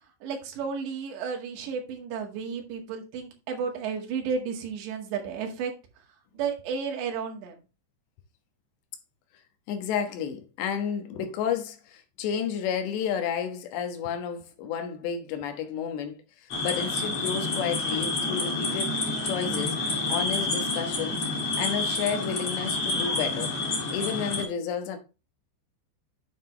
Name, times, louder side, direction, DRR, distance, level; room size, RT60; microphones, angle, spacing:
voice 1, 0.2-5.7 6.3-7.6, right 6 dB, 75° right, 4.0 m, -32 dB
voice 2, 9.7-16.2 16.4-19.8 20.1-21.2 21.6-23.5 23.9-25.0, left 7 dB, 75° left, 3.4 m, -31 dB
sound 1, 16.5-24.4, left 2 dB, 40° left, 2.6 m, -29 dB
9.5 x 6.6 x 3.2 m
omnidirectional pair, 5.2 m